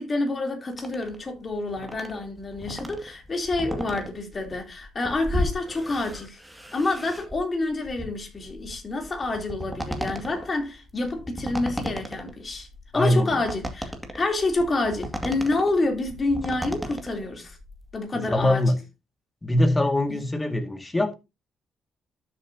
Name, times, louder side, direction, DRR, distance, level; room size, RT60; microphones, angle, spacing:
voice 1, 0.0-6.4 6.7-12.7 12.9-17.6 17.9-18.7 20.1-20.2, left 2 dB, 35° left, 3.4 m, -28 dB
sound 1, 0.7-18.0, equal, 5° right, 2.2 m, -35 dB
voice 2, 12.9-13.4 18.1-18.8 19.4-21.1, left 1 dB, 20° left, 2.1 m, -23 dB
12.0 x 7.5 x 2.8 m
cardioid pair, 90°, 0 cm